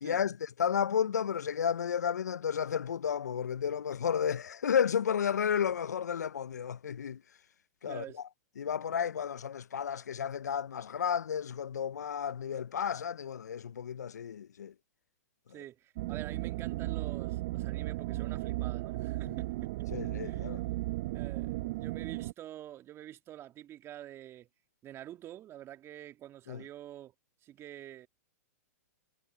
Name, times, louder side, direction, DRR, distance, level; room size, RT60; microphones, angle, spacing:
voice 1, 0.0-7.2 7.8-8.0 8.6-14.7 19.9-20.6 26.5-26.6, left 8 dB, 85° left, 0.4 m, -32 dB
voice 2, 7.9-8.2 15.5-19.9 20.2-20.6 21.1-24.5 24.8-27.1 27.4-28.1, right 12 dB, 30° right, 2.2 m, -47 dB
sound 1, 16.0-22.3, right 19 dB, 55° right, 0.9 m, -35 dB
hypercardioid pair, 115°, 9 cm